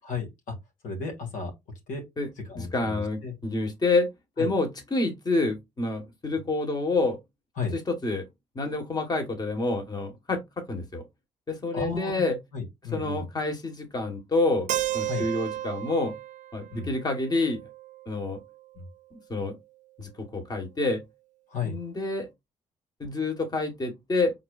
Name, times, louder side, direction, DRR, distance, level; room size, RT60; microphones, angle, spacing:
voice 1, 0.0-0.5 0.8-1.5 1.9-2.0 2.5-3.3 4.4-4.5 7.6-7.7 11.7-12.2 12.5-13.3 15.1-15.3 16.7-16.9 18.8-18.9 21.5-21.8, left 4 dB, 75° left, 2.0 m, -33 dB
voice 2, 2.5-4.1 4.4-7.2 7.7-8.2 8.5-10.4 10.7-11.0 11.5-12.4 12.9-14.7 14.9-16.1 16.5-17.6 18.1-18.4 19.3-19.6 20.0-21.0 21.6-22.3 23.0-24.3, left 2 dB, 30° left, 1.5 m, -28 dB
Keyboard (musical), 14.7-18.6, right 13 dB, 60° right, 0.4 m, -34 dB
4.7 x 3.9 x 2.4 m
supercardioid pair, 60°, 14 cm